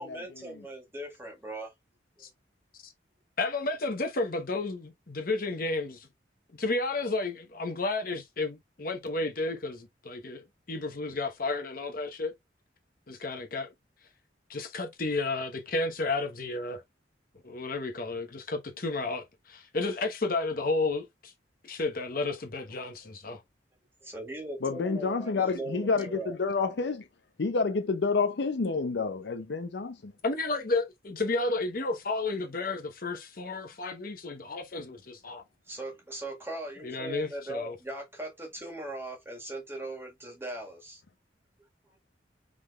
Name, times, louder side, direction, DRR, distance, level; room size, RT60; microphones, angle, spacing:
voice 1, 0.0-1.7 2.2-2.3 24.0-26.4 35.7-41.0, right 1 dB, 15° right, 1.7 m, -39 dB
voice 2, 3.4-6.1 6.5-10.4 10.7-12.3 13.1-13.7 14.5-16.8 17.4-21.3 21.6-23.4 30.2-35.4 36.8-37.8, left 3 dB, 50° left, 1.0 m, -32 dB
voice 3, 24.6-27.0 27.4-30.1, left 4 dB, 70° left, 0.6 m, -29 dB
4.9 x 3.9 x 2.4 m
head